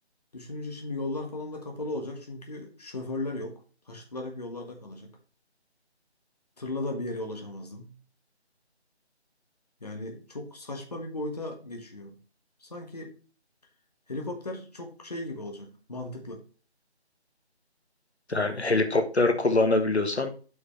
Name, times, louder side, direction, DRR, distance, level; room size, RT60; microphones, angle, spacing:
voice 1, 0.3-3.6 3.9-5.1 6.6-7.9 9.8-12.2 12.6-13.1 14.1-16.4 18.3-18.6, left 2 dB, 35° left, 3 dB, 1.4 m, -36 dB
voice 2, 18.3-20.3, left 2 dB, 75° left, 7 dB, 1.4 m, -24 dB
8.0 x 5.8 x 3.1 m, 0.36 s
figure-of-eight pair, 165°, 33 cm